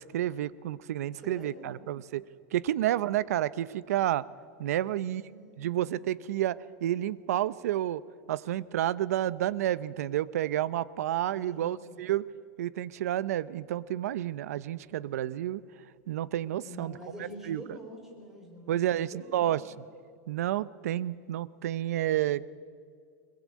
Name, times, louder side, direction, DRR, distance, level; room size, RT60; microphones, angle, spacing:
voice 1, 0.0-2.2 2.5-4.3 4.6-5.2 5.6-8.0 8.3-12.3 12.6-15.6 16.1-16.9 17.5-17.6 18.7-19.6 20.3-22.5, right 12 dB, 85° right, 19 dB, 0.8 m, -30 dB
voice 2, 1.1-1.9 4.8-5.9 11.3-12.0 16.6-19.6, equal, 5° right, 1 dB, 3.8 m, -47 dB
21.5 x 21.5 x 8.5 m, 2.2 s
supercardioid pair, 175°, 8 cm